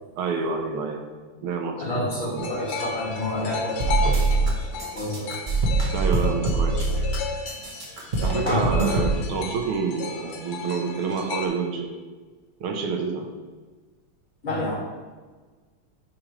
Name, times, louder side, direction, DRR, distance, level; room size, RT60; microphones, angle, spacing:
voice 1, 0.2-1.1 1.4-2.6 4.0-4.2 5.9-7.0 8.2-11.9 12.6-13.3, right 5 dB, 75° right, 3 dB, 1.6 m, -28 dB
voice 2, 1.8-4.7 4.9-5.3 8.5-9.0 14.4-14.7, left 2 dB, 60° left, -6 dB, 2.9 m, -29 dB
sound 1, 2.4-11.5, left 4 dB, 85° left, 1.7 m, -34 dB
sound 2, 3.8-4.5 4.8-7.2 7.5-9.1, right 3 dB, 55° right, 0.5 m, -23 dB
8.7 x 4.9 x 3.2 m, 1.4 s
omnidirectional pair, 2.4 m